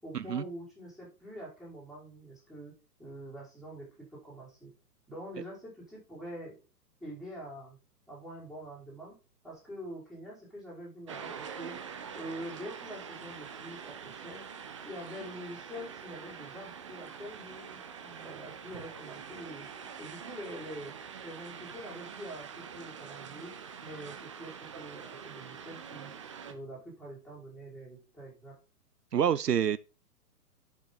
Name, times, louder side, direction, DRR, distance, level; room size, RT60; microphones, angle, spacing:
voice 1, 0.0-2.7 3.0-3.9 4.1-4.7 5.1-6.6 7.0-7.8 8.1-9.2 9.4-11.8 12.1-14.4 14.8-19.7 20.0-20.9 21.2-23.5 23.8-26.1 26.5-28.5, equal, ahead, 5.1 m, -45 dB
sound 1, 11.1-26.5, right 7 dB, 20° right, 0.5 m, -45 dB
voice 2, 29.1-29.8, right 9 dB, 80° right, 0.6 m, -27 dB
11.0 x 6.2 x 3.8 m
figure-of-eight pair, 115°, 47 cm